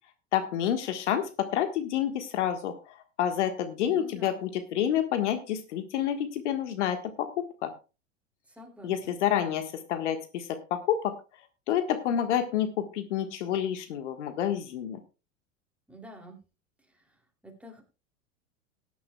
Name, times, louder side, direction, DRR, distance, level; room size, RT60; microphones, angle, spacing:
voice 1, 0.3-2.7 3.2-7.7 8.8-11.1 11.7-15.0, left 10 dB, 70° left, 8 dB, 1.5 m, -29 dB
voice 2, 3.8-4.4 8.5-9.2 15.9-16.4 16.9-17.2 17.4-17.8, equal, 5° right, 2 dB, 2.8 m, -48 dB
19.0 x 10.0 x 2.3 m, 0.32 s
hypercardioid pair, 85°, 38 cm